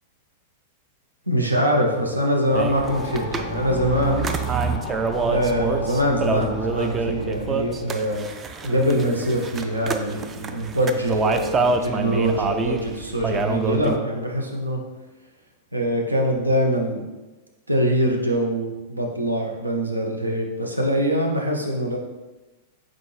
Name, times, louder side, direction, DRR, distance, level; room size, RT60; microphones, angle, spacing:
voice 1, 1.3-4.3 5.2-8.3 8.6-14.8 15.7-17.0 17.7-22.0, equal, 90° right, 0 dB, 0.7 m, -23 dB
sound 1, 2.5-14.0, right 4 dB, 25° right, 0.3 m, -27 dB
sound 2, 2.7-9.2, left 4 dB, 60° left, 0.4 m, -36 dB
4.2 x 3.7 x 3.3 m, 1.2 s
figure-of-eight pair, 95°, 0 cm